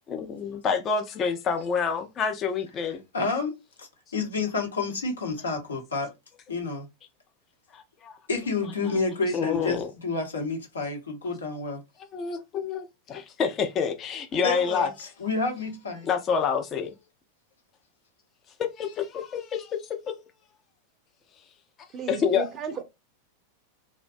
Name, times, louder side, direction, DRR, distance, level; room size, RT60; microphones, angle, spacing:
voice 1, 0.1-3.0 7.7-8.1 9.3-9.9 12.1-14.9 16.0-17.0 18.8-20.1 22.1-22.5, left 6 dB, 30° left, 0.4 m, -28 dB
voice 2, 3.1-3.5 3.8-6.1 6.5-6.9 8.3-11.8 14.4-16.1, left 3 dB, 70° left, 0.8 m, -29 dB
voice 3, 21.9-22.8, right 6 dB, 30° right, 0.4 m, -34 dB
2.4 x 2.1 x 2.4 m
figure-of-eight pair, 90°, 0 cm